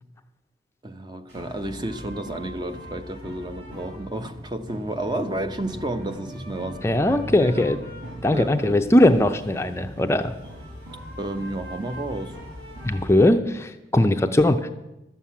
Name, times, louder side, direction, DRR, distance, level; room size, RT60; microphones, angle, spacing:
voice 1, 0.8-6.9 7.4-7.7 8.3-8.8 11.2-12.3, right 1 dB, 25° right, 9 dB, 0.7 m, -31 dB
sound 1, 1.3-13.3, equal, 65° right, 6.1 m, -39 dB
voice 2, 6.8-7.8 8.2-10.3 12.8-14.7, left 1 dB, 15° left, 7 dB, 0.5 m, -20 dB
12.5 x 7.5 x 8.4 m, 0.96 s
head